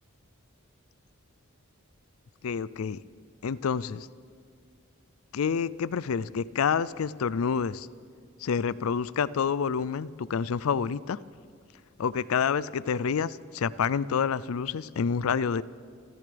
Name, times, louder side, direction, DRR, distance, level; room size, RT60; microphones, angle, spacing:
voice 1, 2.4-3.0 3.4-4.1 5.3-7.9 8.4-11.2 12.0-15.6, left 6 dB, 80° left, 19 dB, 0.4 m, -28 dB
27.0 x 14.0 x 3.4 m, 2.2 s
head